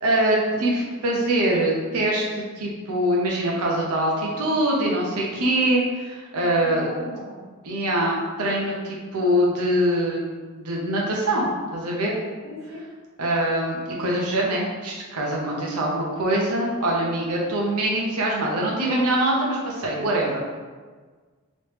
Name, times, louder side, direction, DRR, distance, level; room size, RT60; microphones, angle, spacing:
voice 1, 0.0-2.3 2.6-6.9 7.6-10.2 10.5-11.5 11.7-12.1 13.2-20.4, right 1 dB, 85° right, -2 dB, 0.7 m, -23 dB
voice 2, 6.3-7.5 12.4-12.8, left 2 dB, 25° left, -7 dB, 1.2 m, -38 dB
3.2 x 3.1 x 3.0 m, 1.4 s
head